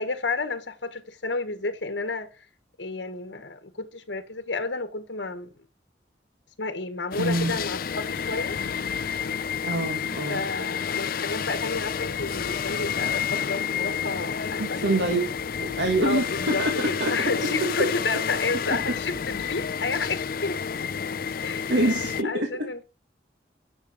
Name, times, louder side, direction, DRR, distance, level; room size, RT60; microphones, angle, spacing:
voice 1, 0.0-2.3 2.8-5.5 6.6-8.6 10.3-14.9 16.0-20.6 21.4-21.8 22.2-22.8, left 3 dB, 80° left, 1.4 m, -31 dB
sound 1, 7.1-22.2, left 7 dB, 55° left, 0.5 m, -30 dB
voice 2, 7.2-7.5 9.6-10.4 14.6-15.3 15.6-17.5 21.7-22.7, right 1 dB, 90° right, 1.7 m, -26 dB
9.9 x 6.5 x 4.9 m
head